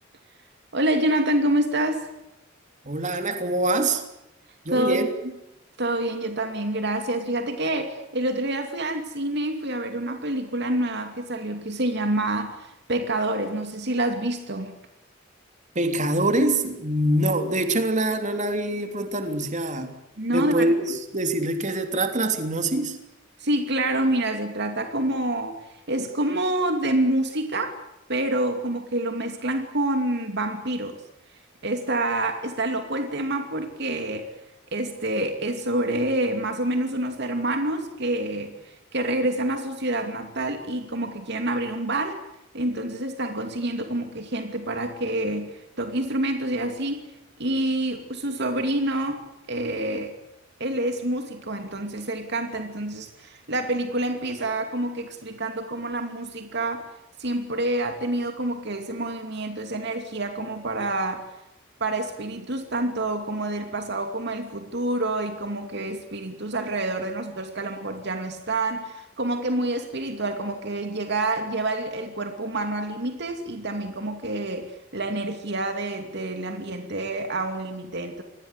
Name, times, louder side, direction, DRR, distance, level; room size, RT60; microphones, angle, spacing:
voice 1, 0.7-2.1 4.7-5.1 5.8-14.7 20.2-20.7 23.4-25.6 25.9-27.8 28.1-31.0 31.6-34.3 34.7-42.2 42.5-47.0 47.4-49.2 49.5-50.1 50.6-56.9 57.2-61.3 61.8-78.2, right 1 dB, 60° right, 6 dB, 2.7 m, -27 dB
voice 2, 2.8-4.0 4.6-5.1 15.7-19.9 20.3-23.0, right 1 dB, 40° right, 6 dB, 3.3 m, -24 dB
27.5 x 20.5 x 8.3 m, 0.89 s
head